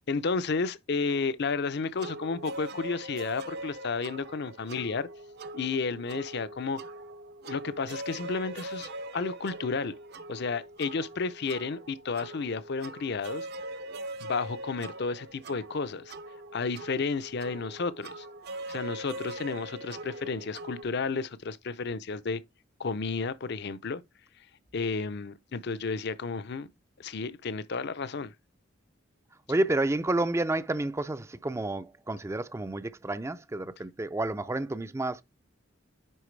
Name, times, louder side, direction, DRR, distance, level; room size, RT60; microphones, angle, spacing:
voice 1, 0.1-5.1 5.5-6.8 7.4-9.9 10.3-13.5 14.2-16.1 16.5-18.3 18.7-22.4 22.8-24.0 24.7-26.7 27.0-28.3, left 4 dB, 55° left, 0.6 m, -32 dB
sound 1, 2.0-20.8, right 1 dB, 55° right, 0.6 m, -42 dB
voice 2, 29.5-35.2, right 2 dB, 15° right, 0.4 m, -30 dB
10.0 x 3.9 x 3.2 m
head